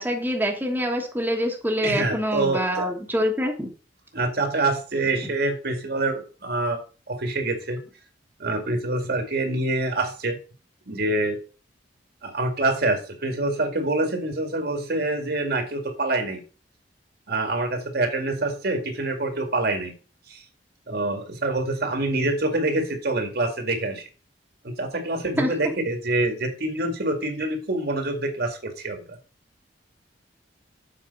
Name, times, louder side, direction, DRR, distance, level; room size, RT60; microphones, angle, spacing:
voice 1, 0.0-3.7 25.4-25.5, equal, 10° right, 1 dB, 1.3 m, -25 dB
voice 2, 1.8-2.9 4.1-6.8 7.1-7.8 8.4-10.4 10.9-11.4 12.2-16.4 17.3-19.9 20.3-20.4 20.9-24.1 24.6-29.2, right 2 dB, 60° right, 5 dB, 2.0 m, -26 dB
7.7 x 5.2 x 5.3 m, 0.35 s
head